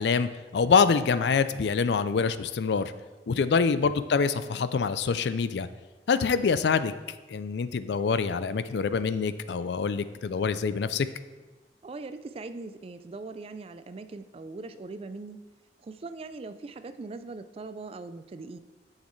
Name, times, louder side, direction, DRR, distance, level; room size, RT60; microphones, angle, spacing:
voice 1, 0.0-2.9 3.3-5.7 6.1-6.9 7.3-11.1, left 5 dB, 70° left, 13 dB, 0.4 m, -25 dB
voice 2, 3.3-3.6 11.8-15.4 15.8-18.6, right 3 dB, 35° right, 11 dB, 0.3 m, -41 dB
10.0 x 6.5 x 3.2 m, 1.3 s
head